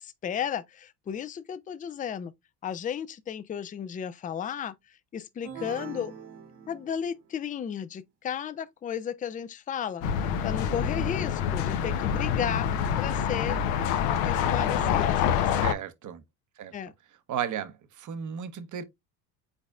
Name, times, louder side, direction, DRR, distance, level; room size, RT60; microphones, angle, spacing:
voice 1, 0.0-2.3 2.6-4.7 5.1-6.1 6.7-10.0 10.4-12.7 13.0-13.6 14.2-15.8 16.7-16.9, left 8 dB, 20° left, 0.4 m, -34 dB
sound 1, 5.4-7.3, right 7 dB, 55° right, 1.3 m, -43 dB
sound 2, 10.0-15.7, left 8 dB, 80° left, 0.9 m, -26 dB
voice 2, 15.6-16.2 16.6-16.7 17.3-18.8, right 9 dB, 40° right, 0.9 m, -34 dB
5.1 x 4.1 x 2.4 m
supercardioid pair, 85°, 49 cm